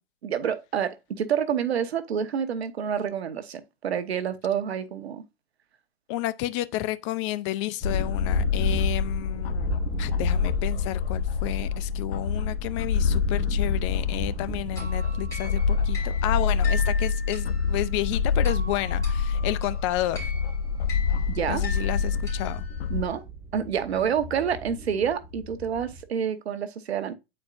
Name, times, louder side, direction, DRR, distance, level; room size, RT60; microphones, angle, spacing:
voice 1, 0.2-5.2 21.3-21.7 22.9-23.2 23.5-27.1, right 8 dB, 85° right, 1.0 m, -28 dB
voice 2, 6.1-9.7 10.0-20.3 21.5-22.7, left 15 dB, 30° left, 0.4 m, -31 dB
sound 1, 7.8-23.1, left 6 dB, 70° left, 0.9 m, -26 dB
sound 2, 7.8-26.0, right 1 dB, 10° right, 1.5 m, -38 dB
sound 3, 14.8-23.1, left 2 dB, 10° left, 3.1 m, -41 dB
8.7 x 4.4 x 2.4 m
hypercardioid pair, 130°, 31 cm